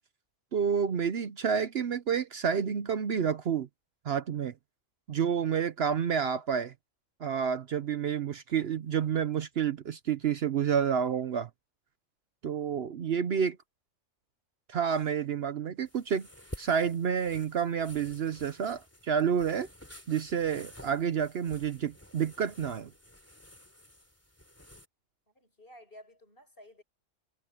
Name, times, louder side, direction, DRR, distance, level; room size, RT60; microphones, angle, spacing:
voice 1, 0.5-3.7 4.0-4.5 5.1-6.7 7.2-11.5 12.4-13.6 14.7-16.3 16.6-19.7 20.1-22.9, right 7 dB, 60° right, 0.9 m, -29 dB
sound 1, 15.9-24.9, equal, 10° left, 3.3 m, -51 dB
voice 2, 25.3-26.8, equal, 45° left, 8.3 m, -53 dB
omnidirectional pair, 1.3 m